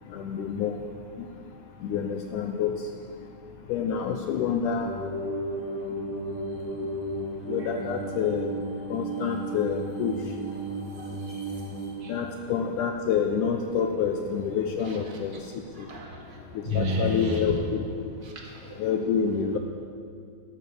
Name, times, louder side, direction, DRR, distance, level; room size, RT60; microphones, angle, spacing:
voice 1, 0.1-0.8 1.8-2.8 3.7-4.9 7.5-8.5 8.9-10.1 12.1-15.4 16.7-17.8 18.8-19.6, left 7 dB, 80° left, 5 dB, 1.9 m, -27 dB
sound 1, 4.7-11.9, right 1 dB, 60° right, 5.8 m, -34 dB
voice 2, 15.7-16.4 16.6-17.6 18.2-18.8, left 1 dB, 40° right, -1 dB, 1.7 m, -31 dB
12.0 x 12.0 x 7.1 m, 2.3 s
omnidirectional pair, 4.3 m